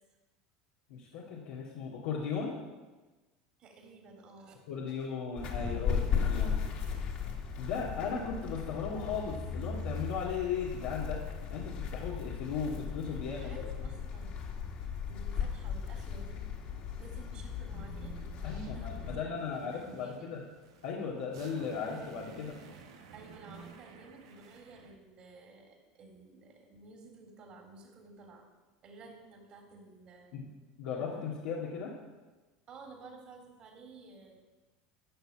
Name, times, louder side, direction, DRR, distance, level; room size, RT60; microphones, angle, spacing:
voice 1, 0.9-2.6 4.7-6.6 7.6-11.2 11.5-13.9 18.4-20.4 20.8-22.6 30.3-30.4 30.8-31.9, left 6 dB, 75° left, -6 dB, 2.3 m, -37 dB
voice 2, 3.6-4.6 13.2-14.4 14.8-16.4 17.0-20.3 23.1-28.5 28.8-30.5 32.7-34.4, right 3 dB, 50° right, 0 dB, 3.5 m, -53 dB
sound 1, 5.4-19.1, left 6 dB, 55° left, 2.7 m, -36 dB
sound 2, 17.6-24.9, right 6 dB, 80° right, 1.5 m, -53 dB
14.0 x 6.4 x 7.6 m, 1.2 s
hypercardioid pair, 85°, 2 cm